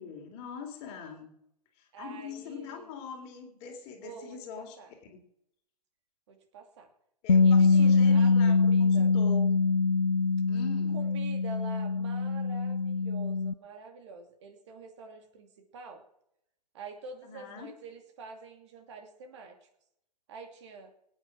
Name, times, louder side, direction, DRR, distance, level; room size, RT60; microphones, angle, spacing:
voice 1, 0.0-1.3 1.8-4.8 5.0-5.2 7.2-9.5 10.5-11.0 17.2-17.7, left 6 dB, 30° left, 4 dB, 3.6 m, -43 dB
voice 2, 1.9-2.9 4.0-4.9 6.3-6.9 7.4-9.1 10.9-16.0 16.7-19.7 20.3-20.9, right 4 dB, 45° right, 5 dB, 2.9 m, -47 dB
Bass guitar, 7.3-13.5, left 4 dB, 80° left, 0.6 m, -24 dB
24.0 x 9.4 x 6.2 m, 0.77 s
figure-of-eight pair, 115°, 21 cm